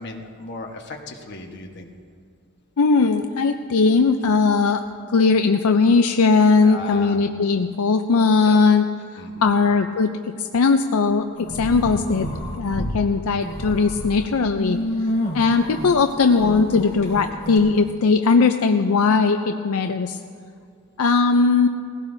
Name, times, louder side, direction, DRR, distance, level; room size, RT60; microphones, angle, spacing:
voice 1, 0.0-1.9 6.6-7.3 8.4-8.6 9.2-9.6, left 3 dB, 50° left, 1 dB, 1.2 m, -36 dB
voice 2, 2.8-4.8 5.1-8.8 9.1-10.1 10.4-12.3 12.6-14.8 15.3-20.2 21.0-21.7, left 4 dB, 80° left, 6 dB, 0.5 m, -19 dB
sound 1, 11.4-12.9 13.3-17.6, equal, 35° left, 3.3 m, -29 dB
20.5 x 16.0 x 2.7 m, 2.2 s
head